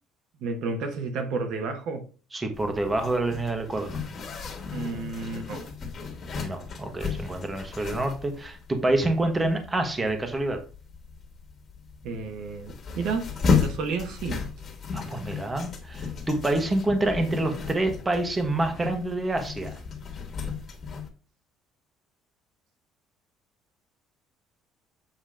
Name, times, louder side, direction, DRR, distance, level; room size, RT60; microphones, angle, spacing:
voice 1, 0.4-2.1 4.7-5.7 12.0-14.4, right 4 dB, 65° right, 1.1 m, -31 dB
voice 2, 2.3-3.9 6.4-10.6 14.9-19.7, right 2 dB, 15° right, 1.1 m, -27 dB
Zipper (clothing), 2.5-21.1, left 5 dB, 35° left, 1.7 m, -34 dB
7.6 x 2.9 x 5.0 m
cardioid pair, 140°, 0 cm